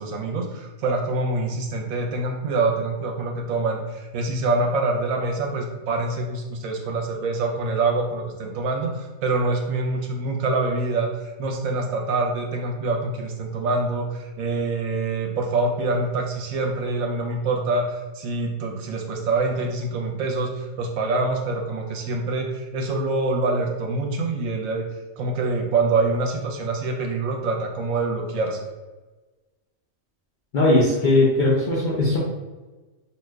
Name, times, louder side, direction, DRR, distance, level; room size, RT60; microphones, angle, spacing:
voice 1, 0.0-24.8 25.2-28.6, right 3 dB, 80° right, 1 dB, 1.0 m, -25 dB
voice 2, 30.5-32.2, left 2 dB, 65° left, -6 dB, 0.5 m, -19 dB
2.7 x 2.1 x 3.3 m, 1.2 s
omnidirectional pair, 1.4 m